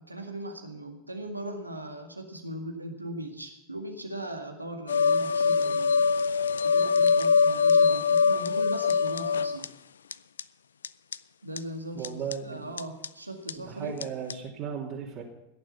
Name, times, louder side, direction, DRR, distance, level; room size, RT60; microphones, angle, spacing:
voice 1, 0.1-5.9 6.6-9.7 11.4-12.1 12.4-13.9, right 1 dB, 90° right, 3 dB, 2.0 m, -39 dB
sound 1, 4.9-9.7 10.1-10.2 10.4-10.5 10.8-10.9 11.1-11.2 11.6-11.7 12.0-12.3 12.8-13.1 13.5-13.6 14.0-14.1 14.3-14.4, left 5 dB, 75° left, 0.4 m, -23 dB
voice 2, 11.9-12.7 13.6-15.2, right 7 dB, 45° right, -4 dB, 3.0 m, -36 dB
17.0 x 10.5 x 5.7 m, 0.92 s
figure-of-eight pair, 85°, 0 cm